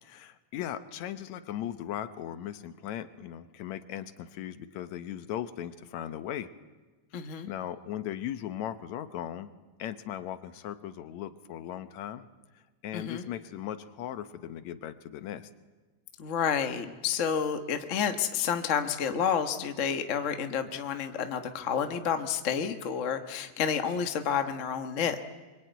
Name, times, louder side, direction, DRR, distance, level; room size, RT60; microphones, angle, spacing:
voice 1, 0.0-6.5 7.5-9.5 9.8-12.3 12.8-15.5, left 11 dB, 75° left, 12 dB, 2.2 m, -38 dB
voice 2, 7.1-7.5 12.9-13.2 16.2-25.2, left 7 dB, 45° left, 8 dB, 0.9 m, -30 dB
24.0 x 23.0 x 9.3 m, 1.3 s
omnidirectional pair, 3.3 m